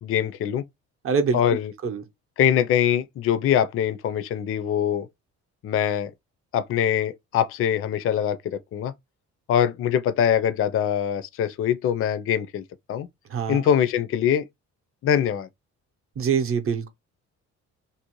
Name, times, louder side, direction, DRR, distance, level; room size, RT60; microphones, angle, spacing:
voice 1, 0.0-0.6 1.3-1.7 2.4-5.1 5.6-6.1 6.5-8.9 9.5-12.6 12.9-13.1 13.5-14.4 15.0-15.5, left 9 dB, 45° left, 0.4 m, -23 dB
voice 2, 1.0-1.4 1.8-2.0 13.3-13.6 16.2-16.9, right 6 dB, 45° right, 0.7 m, -24 dB
2.6 x 2.0 x 2.9 m
cardioid pair, 90°, 30 cm